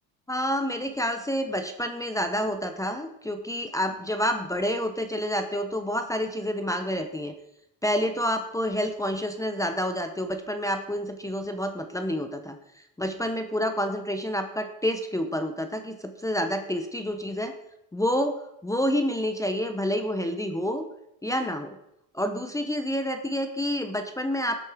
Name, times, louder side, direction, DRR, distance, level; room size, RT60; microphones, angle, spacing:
voice 1, 0.3-7.3 7.8-17.5 17.9-20.9 21.2-21.8 22.1-24.6, equal, 10° left, 7 dB, 0.8 m, -28 dB
13.0 x 8.3 x 3.6 m, 0.82 s
cardioid pair, 125°, 40 cm